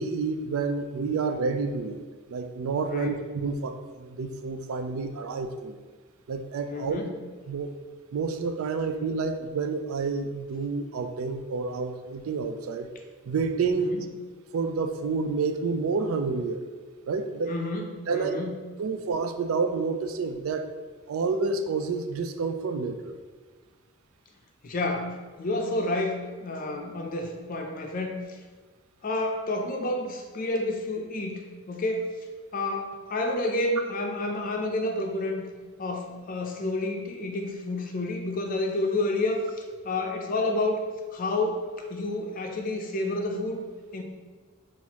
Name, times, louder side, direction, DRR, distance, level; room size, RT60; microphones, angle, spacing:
voice 1, 0.0-5.8 6.3-7.0 7.5-7.7 8.1-12.9 13.3-13.9 14.5-16.6 17.1-17.5 18.1-18.3 18.8-20.7 21.1-23.1, right 4 dB, 75° right, 7 dB, 0.4 m, -29 dB
voice 2, 6.7-7.1 13.7-14.0 17.5-18.6 24.6-28.3 29.0-32.1 32.5-35.5 35.8-40.8 41.1-43.6 43.9-44.0, left 2 dB, 40° left, 2 dB, 0.5 m, -30 dB
5.6 x 2.5 x 3.0 m, 1.5 s
head